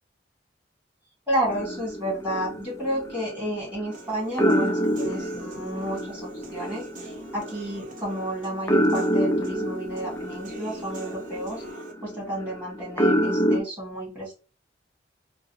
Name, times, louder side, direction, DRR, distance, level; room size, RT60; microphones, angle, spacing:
voice 1, 1.3-11.6 12.0-14.3, right 1 dB, 10° right, -4 dB, 1.8 m, -31 dB
sound 1, 1.4-4.0 4.4-13.6, equal, 15° left, 0.4 m, -27 dB
Human voice / Piano, 3.9-11.9, right 2 dB, 50° right, 0.7 m, -45 dB
3.8 x 2.1 x 2.8 m, 0.33 s
head